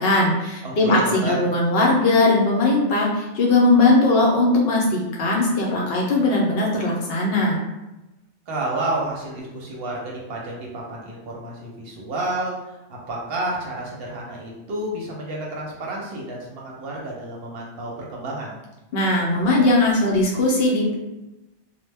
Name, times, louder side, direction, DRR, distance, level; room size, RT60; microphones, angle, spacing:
voice 1, 0.0-7.6 18.9-20.9, left 2 dB, 65° left, -3 dB, 0.7 m, -19 dB
voice 2, 0.6-1.4 8.5-18.6, right 2 dB, 65° right, -3 dB, 0.7 m, -30 dB
2.1 x 2.1 x 3.3 m, 1.0 s
omnidirectional pair, 1.2 m